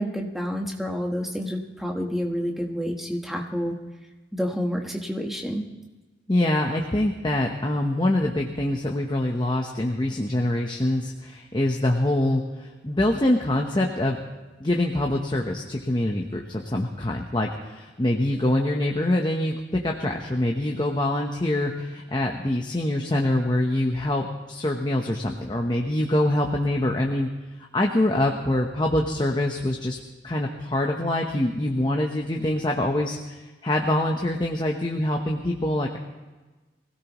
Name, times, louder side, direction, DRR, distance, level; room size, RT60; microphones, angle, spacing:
voice 1, 0.0-3.8 4.3-5.7, equal, ahead, 1 dB, 1.3 m, -29 dB
voice 2, 6.3-14.2 14.6-27.3 27.7-30.0 30.2-36.0, left 1 dB, 25° left, 1 dB, 0.9 m, -25 dB
23.5 x 16.5 x 3.1 m, 1.2 s
head